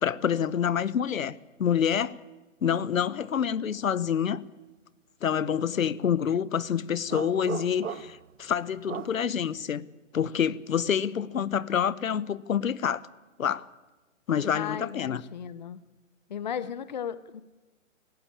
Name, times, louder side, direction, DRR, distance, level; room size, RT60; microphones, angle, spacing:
voice 1, 0.0-2.2 2.6-4.4 5.2-9.8 10.1-13.0 13.4-13.7 14.3-15.2, left 8 dB, 85° left, 1.0 m, -27 dB
Irish wolfhound & Finnish hound barking, 7.1-8.3 8.9-9.2, right 8 dB, 70° right, 0.9 m, -36 dB
voice 2, 14.5-15.8 16.3-17.4, left 8 dB, 35° left, 0.6 m, -35 dB
20.0 x 15.0 x 8.7 m
hypercardioid pair, 165°, 39 cm